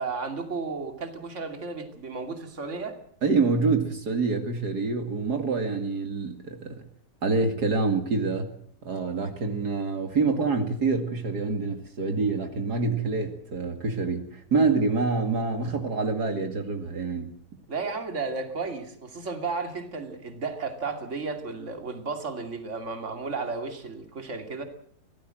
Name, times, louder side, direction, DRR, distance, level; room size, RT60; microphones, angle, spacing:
voice 1, 0.0-3.0 17.7-24.6, right 4 dB, 45° right, 6 dB, 2.9 m, -33 dB
voice 2, 3.2-6.8 7.2-8.5 8.8-17.3, right 4 dB, 70° right, 6 dB, 2.8 m, -26 dB
24.0 x 17.5 x 7.7 m, 0.63 s
omnidirectional pair, 1.8 m